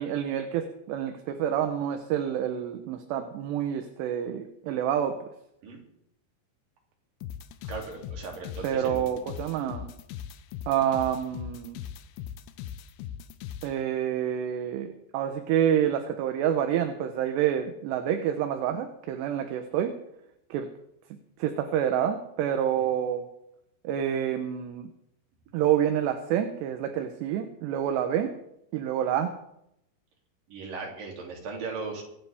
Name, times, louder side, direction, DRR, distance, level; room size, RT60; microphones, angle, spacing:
voice 1, 0.0-5.3 8.6-9.9 10.7-11.8 13.6-20.0 20.5-20.7 21.4-23.3 23.8-24.9 25.5-28.3 28.7-29.4, right 10 dB, 75° right, 6 dB, 2.9 m, -28 dB
sound 1, 7.2-13.7, left 10 dB, 85° left, 2.4 m, -39 dB
voice 2, 7.7-9.1 22.7-22.9 30.5-32.0, right 4 dB, 50° right, -1 dB, 4.3 m, -38 dB
24.0 x 9.9 x 3.5 m, 0.79 s
omnidirectional pair, 5.2 m